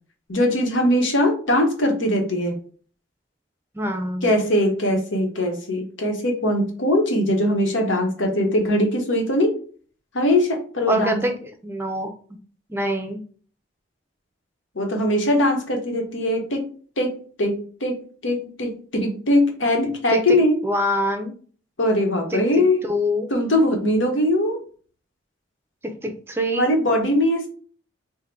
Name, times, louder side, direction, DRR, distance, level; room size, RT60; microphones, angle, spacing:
voice 1, 0.3-2.6 4.2-9.5 10.1-11.3 14.7-16.7 17.0-20.6 21.8-22.8 23.3-24.6 26.5-27.5, left 1 dB, 85° left, 3 dB, 1.1 m, -21 dB
voice 2, 3.7-4.3 10.9-12.1 12.7-13.2 20.1-20.4 20.6-21.3 22.3-22.4 22.8-23.4 25.8-26.7, equal, 10° right, 4 dB, 0.5 m, -25 dB
3.7 x 2.1 x 4.4 m, 0.43 s
head